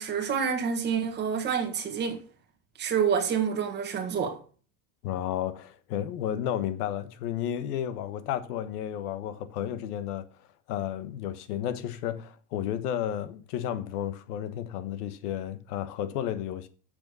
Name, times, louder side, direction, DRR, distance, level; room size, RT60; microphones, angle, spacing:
voice 1, 0.0-2.2 2.8-4.4, right 7 dB, 20° right, 1.7 m, -28 dB
voice 2, 5.0-10.3 10.7-16.7, left 10 dB, 75° left, 1.4 m, -32 dB
8.2 x 6.9 x 6.8 m
cardioid pair, 175°, 46 cm